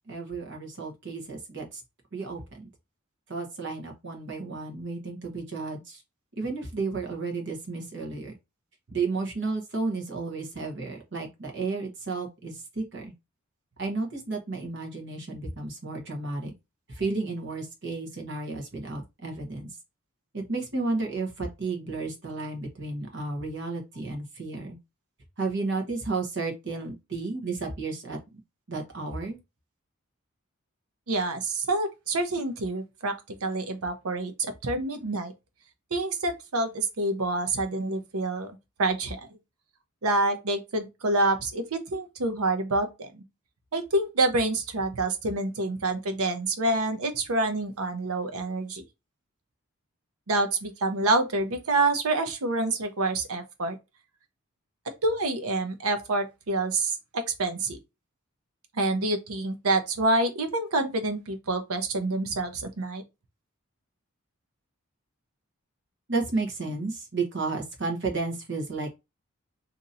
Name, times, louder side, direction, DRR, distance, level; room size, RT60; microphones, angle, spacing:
voice 1, 0.1-1.7 2.1-2.7 3.3-6.0 6.4-8.3 8.9-13.1 13.8-16.5 16.9-19.7 20.3-24.8 25.4-28.2 28.7-29.4 66.1-68.9, right 3 dB, 55° right, 1.1 m, -32 dB
voice 2, 31.1-35.3 35.9-38.5 38.8-39.3 40.0-43.2 43.7-48.8 50.3-53.8 55.0-57.8 58.7-63.0, right 2 dB, 85° right, 0.8 m, -27 dB
2.9 x 2.6 x 3.9 m
head